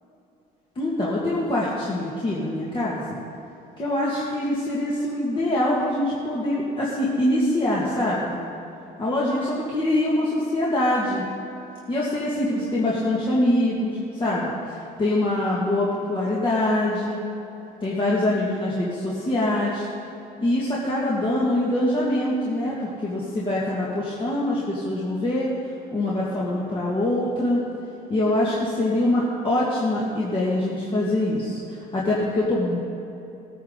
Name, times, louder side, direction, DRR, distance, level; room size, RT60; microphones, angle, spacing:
voice 1, 0.8-3.2 3.8-8.4 9.0-11.2 11.9-17.2 17.8-19.9 20.4-25.5 25.9-27.6 28.1-32.8, left 1 dB, 30° left, -7 dB, 2.1 m, -24 dB
18.0 x 9.2 x 4.0 m, 2.8 s
cardioid pair, 110°, 17 cm